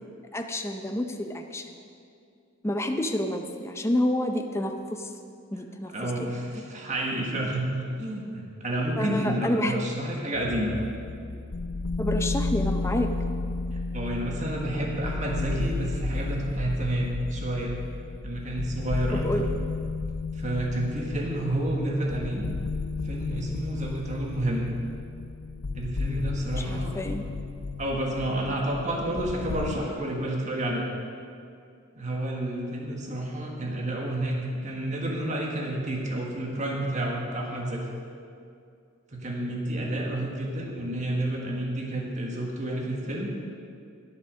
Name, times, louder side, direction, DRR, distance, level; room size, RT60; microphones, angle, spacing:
voice 1, 0.3-1.8 2.6-5.1 5.5-5.9 6.2-6.6 9.0-9.8 12.0-13.1 19.1-19.5 26.6-27.3, left 1 dB, 15° left, 4 dB, 0.6 m, -29 dB
voice 2, 5.9-10.8 13.9-17.8 18.2-19.5 20.3-22.4 23.0-24.7 25.7-26.9 27.8-30.9 32.0-34.3 34.6-37.8 39.1-43.3, right 1 dB, 35° right, -1 dB, 1.6 m, -30 dB
sound 1, 10.3-29.8, left 3 dB, 85° left, 0.7 m, -33 dB
11.0 x 8.2 x 6.3 m, 2.4 s
head